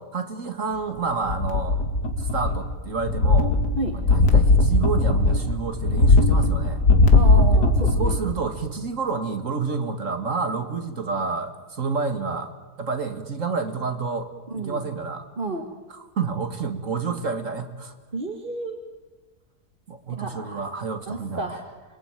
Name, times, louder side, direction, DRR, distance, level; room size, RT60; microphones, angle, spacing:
voice 1, 0.0-1.8 2.2-3.5 3.9-6.8 7.5-7.7 8.0-12.5 12.8-14.3 14.5-15.3 15.9-17.9 19.9-21.5, right 4 dB, 50° right, 8 dB, 2.1 m, -29 dB
sound 1, 1.3-2.7 3.0-8.3 8.7-8.8, left 2 dB, 85° left, 2.8 m, -19 dB
voice 2, 7.1-8.2 14.5-14.8 15.4-15.6 18.1-18.8 20.1-20.6 21.1-21.6, right 3 dB, 30° right, 2 dB, 1.9 m, -31 dB
27.0 x 22.0 x 9.0 m, 1.2 s
omnidirectional pair, 1.7 m